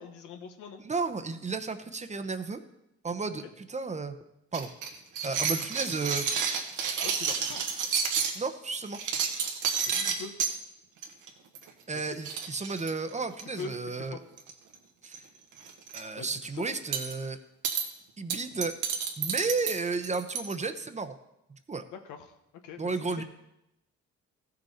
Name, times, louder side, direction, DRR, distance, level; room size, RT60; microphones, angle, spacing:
voice 1, 0.0-0.8 7.0-7.6 9.9-10.4 11.9-12.1 13.5-14.2 16.2-16.6 21.8-22.4 22.6-23.2, left 5 dB, 90° left, 6 dB, 1.2 m, -43 dB
voice 2, 0.8-2.6 3.0-4.2 4.5-4.7 5.2-6.5 8.4-9.0 11.9-14.2 15.0-15.2 15.9-17.4 18.2-18.7 19.2-21.1 21.5-21.8 22.8-23.2, right 4 dB, 25° right, 9 dB, 0.8 m, -33 dB
sound 1, 4.5-8.4 8.9-10.5 11.0-11.3 11.5-11.7 12.0-12.1 12.2-13.6 14.4-14.7 15.0-15.2 15.6-16.0 16.9-17.1 17.6-17.8 18.3-20.5, right 6 dB, 85° right, 1.4 m, -30 dB
15.0 x 6.6 x 4.2 m, 0.87 s
cardioid pair, 90°, 30 cm